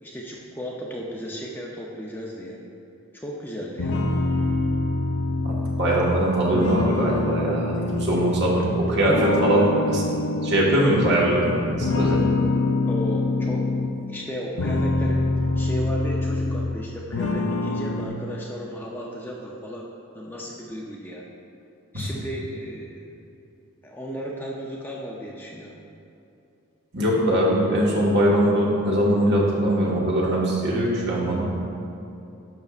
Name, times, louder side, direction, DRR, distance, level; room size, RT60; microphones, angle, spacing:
voice 1, 0.0-2.6 3.1-4.1 8.9-9.1 12.9-13.7 14.1-19.8 20.1-21.2 21.9-23.0 23.8-25.8, equal, 10° left, -3 dB, 0.5 m, -35 dB
sound 1, 3.8-8.7 9.1-11.4 11.8-13.9 14.4-16.8 17.1-18.1, left 2 dB, 70° left, 0.6 m, -25 dB
voice 2, 5.4-10.0 10.4-12.2 21.9-22.0 26.9-31.7, right 1 dB, 50° right, -4 dB, 1.4 m, -21 dB
10.5 x 6.8 x 2.4 m, 2.7 s
head